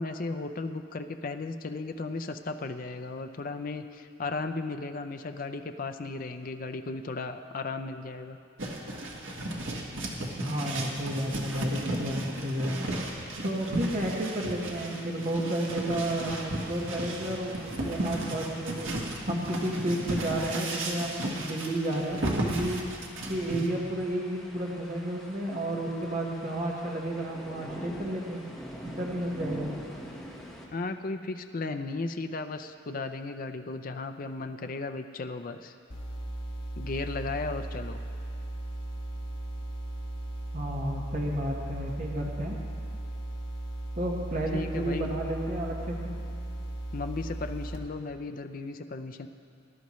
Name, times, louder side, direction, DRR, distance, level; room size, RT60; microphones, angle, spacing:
voice 1, 0.0-8.4 30.7-35.7 36.8-38.0 44.5-45.1 46.9-49.3, left 3 dB, 45° left, 7 dB, 0.5 m, -35 dB
sound 1, 8.6-23.7, right 1 dB, 85° right, 1.5 m, -34 dB
voice 2, 10.3-13.0 13.4-18.9 19.3-22.8 23.3-28.4 29.0-29.7 40.5-42.6 44.0-46.2, right 1 dB, 40° right, -2 dB, 1.4 m, -32 dB
sound 2, 15.9-30.7, equal, ahead, 1.4 m, -46 dB
sound 3, 35.9-47.8, right 1 dB, 65° left, 1.6 m, -37 dB
20.0 x 11.5 x 3.1 m, 2.3 s
head